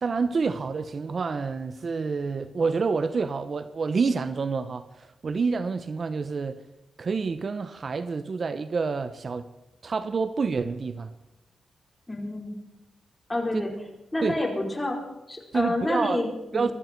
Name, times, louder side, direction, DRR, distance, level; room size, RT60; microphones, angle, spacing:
voice 1, 0.0-6.6 7.0-9.5 9.8-11.1 13.5-13.6 14.2-14.4 15.5-16.2 16.5-16.7, right 4 dB, 50° right, 0.8 m, -28 dB
voice 2, 12.1-12.6 13.3-13.7 14.1-15.0 15.3-16.7, left 1 dB, 15° left, 4.7 m, -28 dB
22.0 x 13.5 x 4.5 m
cardioid pair, 80°, 0 cm